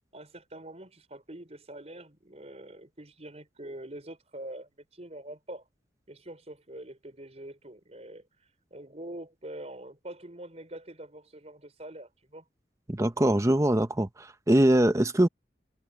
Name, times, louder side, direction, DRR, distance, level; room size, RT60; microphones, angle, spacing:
voice 1, 0.1-5.6 6.1-12.4, right 1 dB, 35° right, 5.1 m, -44 dB
voice 2, 12.9-15.3, right 1 dB, 15° right, 0.8 m, -23 dB
head